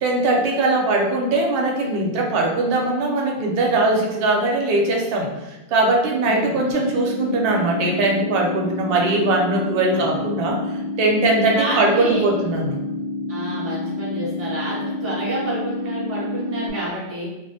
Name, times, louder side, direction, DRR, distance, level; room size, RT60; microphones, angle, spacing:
voice 1, 0.0-10.6 11.0-12.8, right 2 dB, 60° right, -1 dB, 0.7 m, -20 dB
voice 2, 6.2-6.6 9.9-10.2 11.5-12.3 13.3-17.2, right 1 dB, 15° right, -7 dB, 0.6 m, -29 dB
sound 1, 6.7-16.7, left 2 dB, 85° left, 1.0 m, -29 dB
2.3 x 2.1 x 2.6 m, 0.99 s
omnidirectional pair, 1.2 m